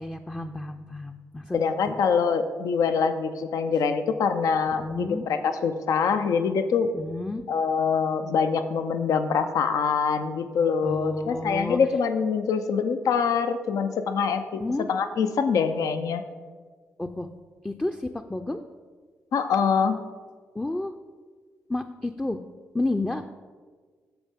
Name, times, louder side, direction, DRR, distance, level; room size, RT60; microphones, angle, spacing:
voice 1, 0.0-1.6 1.9-2.0 4.7-5.2 6.9-7.4 10.8-11.8 14.6-14.9 17.0-17.3 17.6-18.6 20.5-21.0 21.7-22.4 22.7-23.3, left 2 dB, 15° left, 5 dB, 0.5 m, -31 dB
voice 2, 1.5-6.9 7.5-14.6 14.9-16.2 19.3-20.0, left 6 dB, 70° left, 9 dB, 0.5 m, -24 dB
13.0 x 4.4 x 3.5 m, 1.5 s
hypercardioid pair, 45°, 6 cm